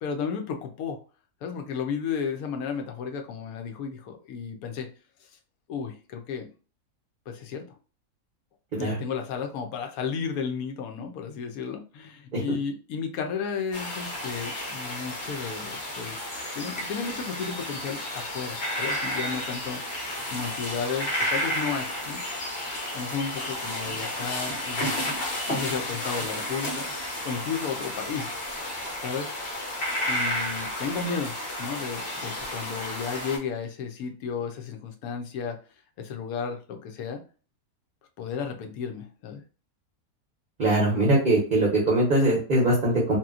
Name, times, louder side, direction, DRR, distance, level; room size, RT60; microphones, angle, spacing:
voice 1, 0.0-1.0 1.4-4.9 5.7-6.5 7.3-7.8 8.7-16.2 16.6-19.8 20.3-22.2 22.9-25.1 25.5-26.9 27.2-28.3 29.0-29.3 30.1-35.6 36.0-37.2 38.2-39.4, left 6 dB, 75° left, 5 dB, 1.0 m, -33 dB
sound 1, 13.7-33.4, left 1 dB, 50° left, 0.9 m, -32 dB
voice 2, 40.6-43.2, right 1 dB, 45° right, -3 dB, 0.7 m, -22 dB
2.9 x 2.6 x 2.3 m, 0.37 s
omnidirectional pair, 1.6 m